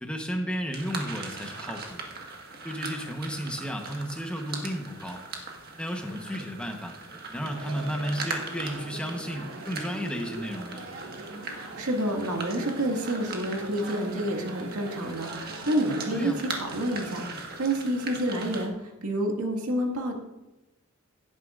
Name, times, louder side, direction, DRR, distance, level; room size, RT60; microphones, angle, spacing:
voice 1, 0.0-2.1 2.6-5.2 5.8-7.0 7.3-10.8 16.1-16.4, equal, 5° left, 3 dB, 1.0 m, -33 dB
sound 1, 0.7-18.7, right 3 dB, 45° right, 1.6 m, -40 dB
sound 2, 7.4-17.4, right 2 dB, 60° right, 1.7 m, -42 dB
voice 2, 11.5-20.2, right 1 dB, 90° right, 1 dB, 2.0 m, -29 dB
17.0 x 9.4 x 2.5 m, 0.99 s
head